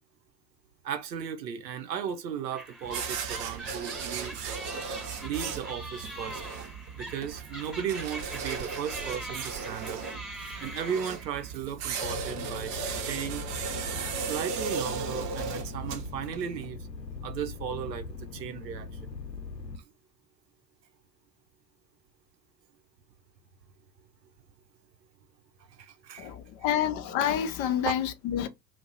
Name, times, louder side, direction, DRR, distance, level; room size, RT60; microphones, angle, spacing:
voice 1, 0.8-4.4 5.0-10.1 10.6-13.5 14.2-16.9 17.2-18.9 25.8-26.3, right 8 dB, 80° right, 0.6 m, -36 dB
sound 1, 2.5-11.6, right 1 dB, ahead, 1.0 m, -43 dB
sound 2, 2.8-16.7, right 6 dB, 40° right, 0.7 m, -36 dB
sound 3, 12.0-19.8, left 4 dB, 90° left, 0.6 m, -41 dB
voice 2, 26.2-28.5, left 10 dB, 40° left, 0.5 m, -28 dB
2.3 x 2.0 x 3.8 m
figure-of-eight pair, 70°, 49 cm